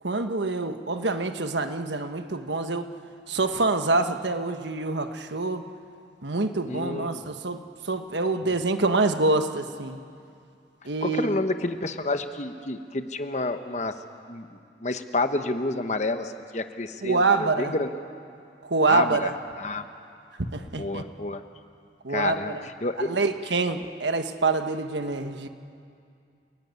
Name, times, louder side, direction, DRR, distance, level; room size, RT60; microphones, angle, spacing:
voice 1, 0.0-2.9 3.3-5.7 6.2-10.0 10.8-11.4 17.0-17.7 18.6-19.3 20.4-21.0 22.0-22.6 23.0-25.5, right 3 dB, 85° right, 8 dB, 1.3 m, -26 dB
voice 2, 6.7-7.3 11.0-14.0 14.3-17.9 18.9-19.3 19.6-19.8 20.8-21.4 22.1-23.1, left 2 dB, 40° left, 8 dB, 1.1 m, -29 dB
28.5 x 17.0 x 9.5 m, 2.4 s
head